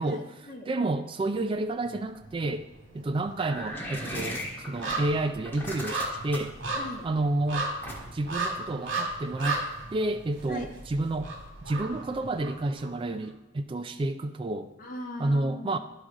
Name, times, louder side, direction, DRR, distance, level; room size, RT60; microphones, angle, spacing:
voice 1, 0.0-0.7 6.7-7.1 10.5-10.7 14.8-15.8, left 1 dB, 50° left, 0 dB, 1.3 m, -40 dB
voice 2, 0.7-2.6 2.9-6.5 7.0-7.7 8.1-11.3 11.6-14.7 15.2-15.8, right 2 dB, 30° right, 10 dB, 0.3 m, -30 dB
sound 1, 1.9-2.6 2.9-12.9 13.2-13.3, right 3 dB, 85° right, 2.1 m, -35 dB
sound 2, 3.4-5.0 5.4-6.6 7.8-8.3, equal, 10° left, 1.7 m, -36 dB
12.0 x 4.9 x 3.8 m, 1.2 s
head